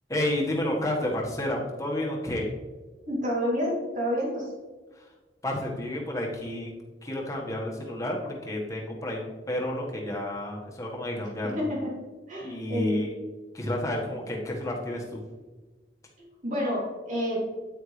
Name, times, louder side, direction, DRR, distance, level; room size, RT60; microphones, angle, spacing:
voice 1, 0.1-2.5 4.9-5.1 5.4-6.7 7.0-11.6 12.4-13.2 13.5-15.2, left 1 dB, 20° left, -2 dB, 1.6 m, -30 dB
voice 2, 3.1-4.5 11.6-11.9 12.3-13.0 16.4-17.5, equal, 45° right, -4 dB, 3.0 m, -29 dB
9.2 x 9.2 x 3.4 m, 1.3 s
head